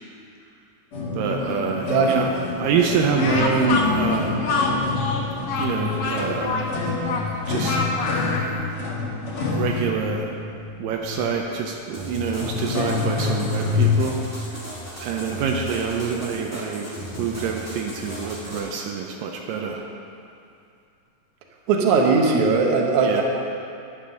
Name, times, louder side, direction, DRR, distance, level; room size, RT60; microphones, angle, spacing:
sound 1, 0.9-14.0, left 4 dB, 50° left, 2.1 m, -27 dB
voice 1, 1.2-2.3 2.6-4.7 5.6-6.7 7.5-7.8 8.2-8.6 8.9-9.0 9.5-10.3 10.8-14.2 14.4-14.6 15.0-19.9 23.0-23.2, right 5 dB, 80° right, 1 dB, 2.4 m, -26 dB
Speech, 3.2-8.5, left 3 dB, 65° left, 1.8 m, -26 dB
sound 2, 11.9-18.6, left 1 dB, 10° left, 0.8 m, -36 dB
voice 2, 21.7-23.2, right 4 dB, 65° right, 1 dB, 2.3 m, -19 dB
10.5 x 7.4 x 6.4 m, 2.5 s
omnidirectional pair, 4.0 m